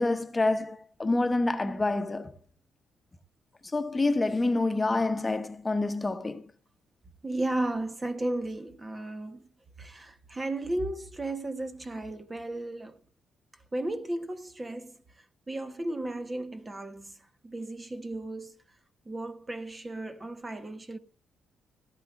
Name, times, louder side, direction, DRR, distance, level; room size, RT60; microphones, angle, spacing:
voice 1, 0.0-2.3 3.7-6.4, left 2 dB, 20° left, 1.1 m, -27 dB
voice 2, 7.2-9.4 9.8-13.0 13.7-15.0 15.5-17.2 17.4-18.6 19.1-21.0, right 1 dB, 20° right, 1.1 m, -34 dB
17.5 x 12.0 x 2.4 m
cardioid pair, 90°, 0 cm